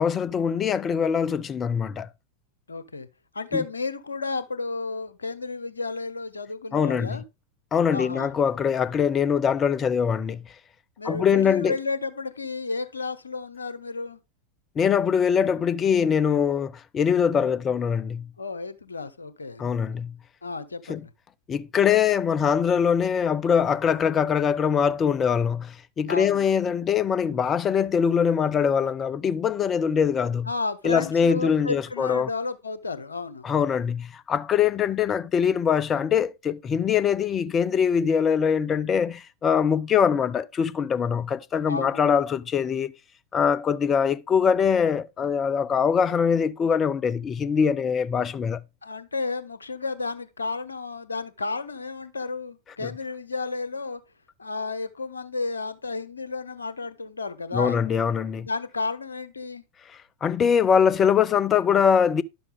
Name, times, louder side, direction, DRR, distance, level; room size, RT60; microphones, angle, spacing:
voice 1, 0.0-2.1 3.5-3.6 6.7-7.2 7.7-10.4 11.0-11.7 14.8-18.3 19.6-20.1 20.9-21.0 21.5-30.5 30.8-32.3 33.4-42.9 43.3-48.6 52.8-52.9 57.5-58.5 60.2-62.2, left 7 dB, 25° left, 0.5 m, -23 dB
voice 2, 2.7-3.1 3.3-7.2 7.9-8.3 11.0-14.2 18.4-19.6 20.4-21.1 26.1-26.4 30.4-33.5 41.7-42.2 48.8-54.0 54.4-57.8 58.4-59.6, left 3 dB, 75° left, 0.9 m, -32 dB
11.0 x 7.0 x 3.4 m
figure-of-eight pair, 90°, 0 cm